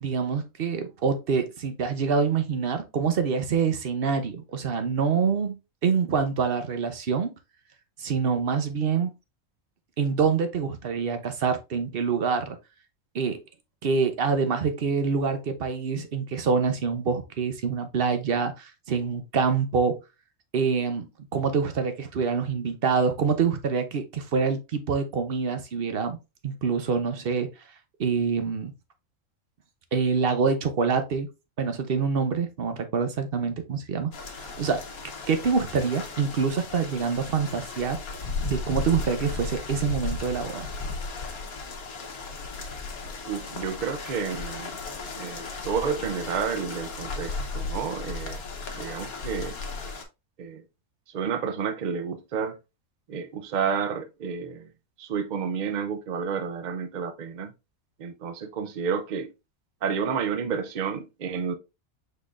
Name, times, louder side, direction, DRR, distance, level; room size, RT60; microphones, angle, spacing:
voice 1, 0.0-5.6 5.8-7.3 8.0-9.1 10.0-12.6 13.1-13.4 13.8-20.0 20.5-21.1 21.3-26.2 26.4-27.5 28.0-28.7 29.9-31.3 31.6-34.8 35.3-38.0 38.4-40.7, right 5 dB, 50° right, 0.8 m, -26 dB
sound 1, 34.1-50.0, left 3 dB, 80° left, 1.4 m, -35 dB
voice 2, 43.3-44.7 45.2-48.4 48.7-49.6 50.4-50.6 51.1-52.6 53.1-54.7 55.0-57.5 58.0-59.3 59.8-61.5, right 6 dB, 85° right, 0.4 m, -30 dB
5.2 x 4.2 x 2.4 m
omnidirectional pair, 1.5 m